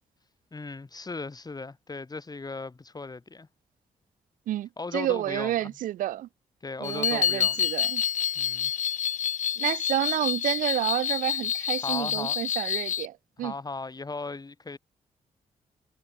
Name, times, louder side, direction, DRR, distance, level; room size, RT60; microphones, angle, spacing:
voice 1, 0.5-3.5 4.8-5.7 6.6-7.6 8.3-8.7 11.8-12.4 13.4-14.8, left 3 dB, 30° left, 5.0 m, -37 dB
voice 2, 4.5-6.3 6.8-8.0 9.6-13.5, right 13 dB, 90° right, 2.6 m, -30 dB
sound 1, 6.8-13.1, left 9 dB, 65° left, 1.7 m, -28 dB
cardioid pair, 65°, 13 cm